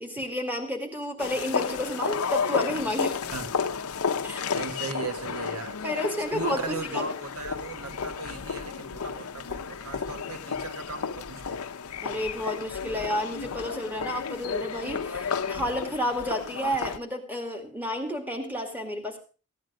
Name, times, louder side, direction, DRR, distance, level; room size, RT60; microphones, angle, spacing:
voice 1, 0.0-3.2 4.2-4.4 5.8-7.0 12.0-19.2, equal, 10° right, 2.2 m, -31 dB
sound 1, 1.2-17.0, left 6 dB, 80° left, 0.7 m, -32 dB
voice 2, 4.5-5.8 6.3-11.7, right 3 dB, 90° right, 1.6 m, -37 dB
15.0 x 9.5 x 5.0 m
head